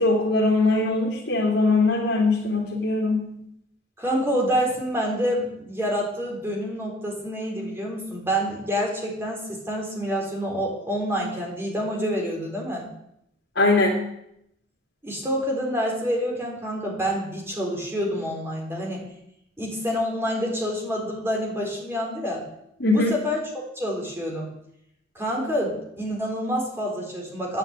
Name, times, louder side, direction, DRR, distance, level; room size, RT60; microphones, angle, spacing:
voice 1, 0.0-3.2 13.6-13.9 22.8-23.1, left 2 dB, 75° left, -4 dB, 3.1 m, -21 dB
voice 2, 4.0-12.9 15.0-19.1 19.6-22.5 22.9-24.5 25.1-27.6, equal, 15° right, -1 dB, 4.1 m, -27 dB
11.0 x 9.8 x 8.9 m, 0.77 s
head